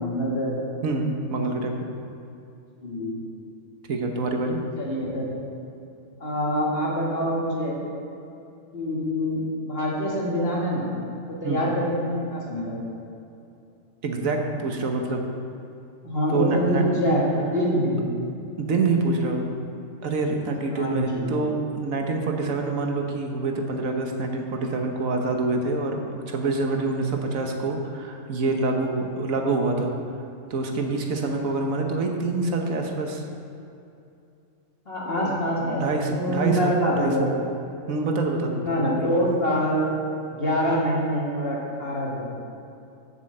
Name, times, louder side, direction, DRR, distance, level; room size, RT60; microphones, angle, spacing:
voice 1, 0.0-0.7 2.8-3.2 4.8-5.3 6.2-7.8 8.7-10.9 11.3-12.9 16.0-18.1 20.7-21.3 34.9-37.3 38.6-39.9 40.3-42.3, equal, 45° left, -4 dB, 2.1 m, -25 dB
voice 2, 0.8-1.9 3.9-4.6 11.4-11.6 14.0-15.3 16.3-17.0 18.6-19.4 20.0-29.9 30.5-33.2 35.2-37.1 37.9-39.1, right 3 dB, 85° right, 2 dB, 1.5 m, -26 dB
7.4 x 6.3 x 7.6 m, 2.7 s
omnidirectional pair, 1.4 m